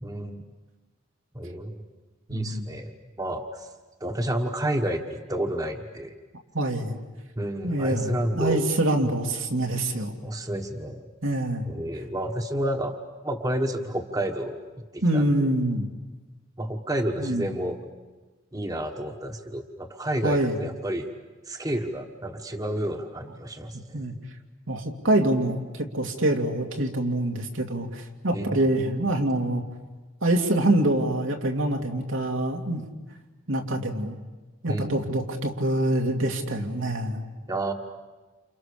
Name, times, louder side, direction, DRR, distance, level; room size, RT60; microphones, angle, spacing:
voice 1, 0.0-0.4 1.3-1.8 2.3-3.7 4.0-6.1 7.4-8.6 9.0-9.1 10.2-11.1 11.7-13.0 13.2-14.6 14.9-15.5 16.6-17.8 18.5-21.1 21.5-24.0 28.3-28.7 34.7-35.1 37.5-37.7, right 1 dB, 20° right, 5 dB, 1.4 m, -30 dB
voice 2, 2.3-2.6 6.5-7.0 7.6-10.1 11.2-11.7 15.0-15.9 17.2-17.4 20.2-20.6 23.9-24.1 24.7-29.6 30.2-32.8 33.5-34.2 34.6-37.2, right 1 dB, 80° right, 2 dB, 2.8 m, -25 dB
29.0 x 29.0 x 6.9 m, 1.2 s
head